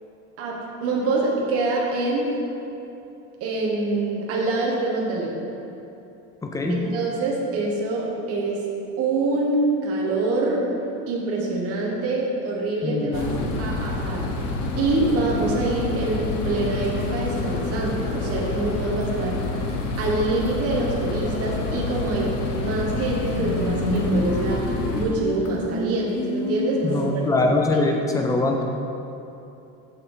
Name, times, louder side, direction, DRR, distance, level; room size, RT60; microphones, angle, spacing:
voice 1, 0.4-2.4 3.4-5.5 6.7-8.7 9.0-10.7 11.1-13.3 13.6-19.7 20.0-27.8, right 2 dB, 45° right, -2 dB, 1.2 m, -25 dB
voice 2, 6.4-6.8 12.8-13.8 26.8-28.6, left 2 dB, 10° left, 2 dB, 0.5 m, -23 dB
sound 1, 13.1-25.1, left 3 dB, 80° left, 1.1 m, -28 dB
sound 2, 22.6-22.7 23.0-27.0, left 1 dB, 55° left, 1.0 m, -28 dB
6.9 x 6.6 x 3.8 m, 2.9 s
cardioid pair, 155°, 33 cm